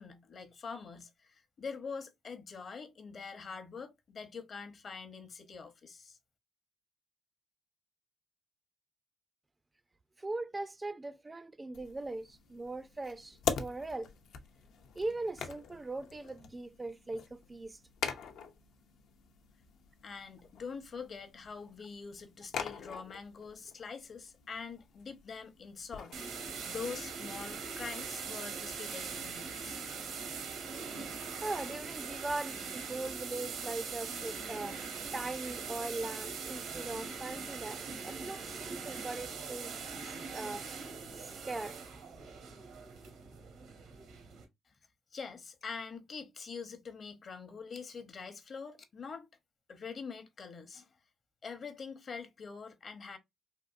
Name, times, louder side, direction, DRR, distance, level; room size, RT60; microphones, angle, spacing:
voice 1, 0.0-6.2 20.0-29.8 44.7-44.8 45.1-49.3 49.7-50.9 51.4-53.2, left 5 dB, 50° left, 0.7 m, -44 dB
voice 2, 10.2-14.1 15.0-17.8 31.4-34.8 35.1-40.0 40.3-40.6 41.2-41.8, right 2 dB, 20° right, 0.3 m, -40 dB
sound 1, 11.7-29.4, left 7 dB, 80° left, 0.6 m, -44 dB
sound 2, 26.1-44.4, right 5 dB, 85° right, 1.1 m, -42 dB
3.8 x 2.4 x 2.5 m
cardioid pair, 90°, 0 cm